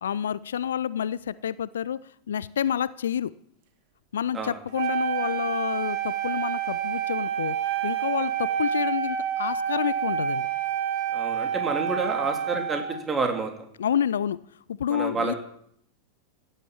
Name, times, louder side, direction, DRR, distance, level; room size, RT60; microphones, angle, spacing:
voice 1, 0.0-2.0 2.3-3.3 4.1-10.5 13.8-14.4 14.7-15.3, left 9 dB, 65° left, 19 dB, 0.5 m, -29 dB
Wind instrument woodwind instrument, 4.7-13.0, right 9 dB, 45° right, 2.4 m, -28 dB
voice 2, 11.1-13.5 14.9-15.4, right 4 dB, 20° right, 4 dB, 3.4 m, -29 dB
16.0 x 11.5 x 7.3 m, 0.68 s
figure-of-eight pair, 90°, 0 cm